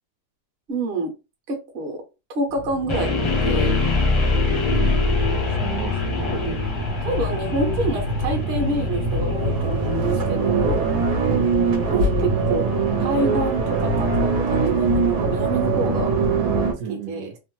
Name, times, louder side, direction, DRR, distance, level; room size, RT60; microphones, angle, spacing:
voice 1, 0.7-1.1 1.5-2.0 2.3-3.2 3.5-3.7 6.3-6.6 7.0-10.9 11.9-12.6 13.0-16.1 16.9-17.3, right 2 dB, 50° right, 2 dB, 0.9 m, -27 dB
sound 1, 2.6-16.7, right 3 dB, 90° right, 1.2 m, -23 dB
sound 2, 2.9-14.8, left 3 dB, 35° left, 0.4 m, -26 dB
voice 2, 4.7-6.1 11.2-11.5 16.8-17.3, right 8 dB, 70° right, 3 dB, 1.1 m, -34 dB
2.8 x 2.0 x 3.0 m, 0.27 s
omnidirectional pair, 1.7 m